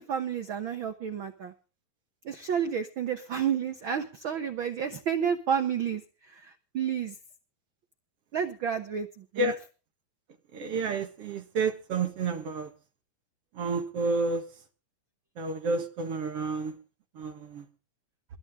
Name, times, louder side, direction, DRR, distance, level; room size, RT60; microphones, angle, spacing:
voice 1, 0.0-1.5 2.2-6.0 6.3-7.1 8.3-9.5, right 8 dB, 75° right, 1.1 m, -30 dB
voice 2, 10.5-12.7 13.5-14.5 15.4-16.8 17.1-17.7, right 3 dB, 50° right, 2.1 m, -30 dB
22.0 x 12.0 x 3.6 m
omnidirectional pair, 4.0 m